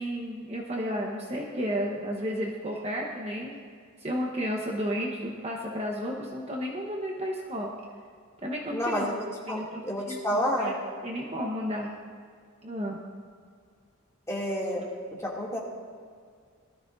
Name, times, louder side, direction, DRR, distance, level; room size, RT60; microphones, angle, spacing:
voice 1, 0.0-3.5 4.0-7.7 8.4-9.1 9.5-10.7 11.0-11.9 12.6-13.0, equal, 30° right, -1 dB, 1.1 m, -32 dB
voice 2, 8.7-10.7 14.3-14.8 15.2-15.6, equal, 15° left, -5 dB, 2.6 m, -30 dB
19.0 x 13.0 x 2.6 m, 2.1 s
head